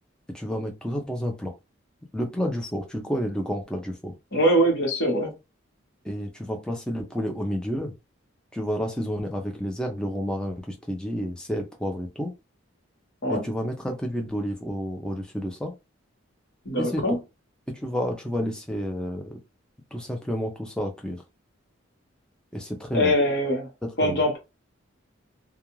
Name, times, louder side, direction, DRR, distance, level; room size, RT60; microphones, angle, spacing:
voice 1, 0.3-1.5 2.1-4.1 5.2-5.3 6.0-7.9 8.5-12.3 13.3-15.7 16.8-17.2 17.7-19.4 19.9-21.2 22.5-23.1 23.8-24.2, equal, 5° left, 0.4 m, -30 dB
voice 2, 4.3-5.3 13.2-13.4 16.6-17.2 22.9-23.7 24.0-24.4, equal, 55° left, 1.1 m, -22 dB
2.4 x 2.2 x 3.0 m
head